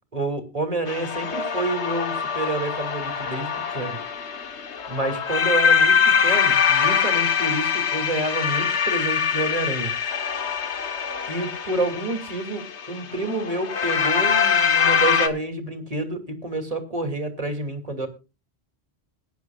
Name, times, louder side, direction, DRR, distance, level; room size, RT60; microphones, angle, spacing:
voice 1, 0.1-4.0 4.9-9.9 11.3-18.1, right 2 dB, 35° right, 6 dB, 2.9 m, -28 dB
sound 1, 0.9-15.3, left 6 dB, 80° left, 1.5 m, -23 dB
22.0 x 10.5 x 2.4 m, 0.29 s
omnidirectional pair, 1.1 m